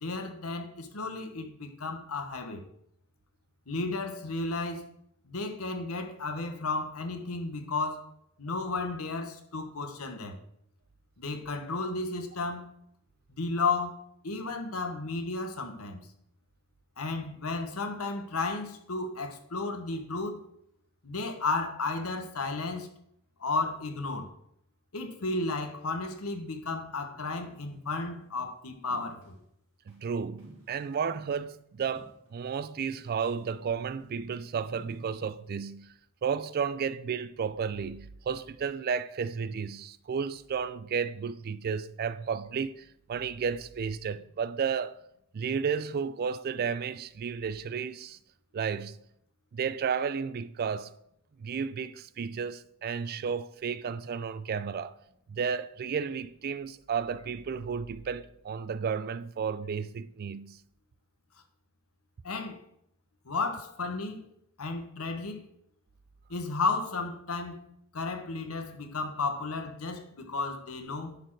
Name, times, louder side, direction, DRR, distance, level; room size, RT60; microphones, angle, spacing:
voice 1, 0.0-2.6 3.7-4.8 5.3-8.1 8.4-10.4 11.2-12.7 13.3-16.0 17.0-20.4 21.0-22.9 23.4-24.3 24.9-29.4 62.2-62.6 63.2-64.3 64.6-65.5 66.3-67.6 67.9-71.2, left 3 dB, 80° left, 1.1 m, -33 dB
sound 1, 27.5-27.9 28.9-29.4 29.9-30.0 30.4-31.4 31.9-32.6 32.9-33.1 33.4-34.0 34.7-35.3, right 1 dB, 75° right, 3.0 m, -55 dB
voice 2, 29.9-35.9 36.2-45.0 45.3-48.2 48.5-49.0 49.5-51.0 51.4-54.9 55.3-60.6, right 6 dB, 45° right, 0.4 m, -33 dB
10.0 x 4.3 x 4.7 m
head